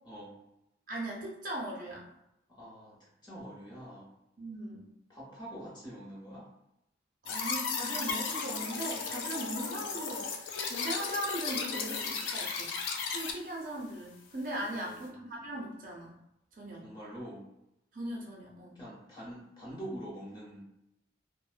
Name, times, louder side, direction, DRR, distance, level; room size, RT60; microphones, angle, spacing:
voice 1, 0.0-0.4 2.5-4.1 5.1-6.5 14.6-15.2 16.7-17.4 18.7-20.6, right 1 dB, 25° left, -6 dB, 0.8 m, -45 dB
voice 2, 0.9-2.1 4.4-4.9 7.2-12.7 13.1-16.1 16.6-16.8 17.9-18.8, right 1 dB, 45° right, -3 dB, 0.5 m, -39 dB
sound 1, 7.3-13.3, left 5 dB, 85° left, 0.4 m, -35 dB
2.4 x 2.1 x 2.5 m, 0.85 s
head